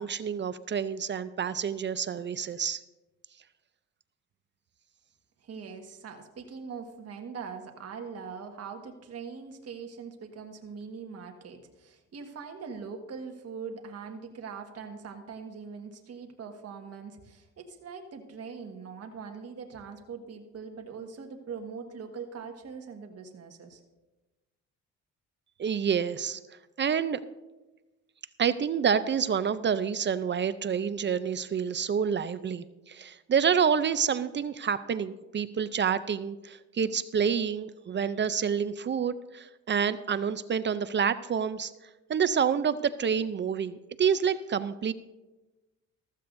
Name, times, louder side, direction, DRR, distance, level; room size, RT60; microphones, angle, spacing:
voice 1, 0.0-2.8 25.6-26.4 26.8-27.2 28.4-41.7 42.1-44.9, right 7 dB, 40° right, 14 dB, 0.5 m, -28 dB
voice 2, 5.4-23.8, right 5 dB, 55° right, 3 dB, 1.5 m, -42 dB
14.5 x 14.0 x 2.6 m, 1.1 s
cardioid pair, 90°, 30 cm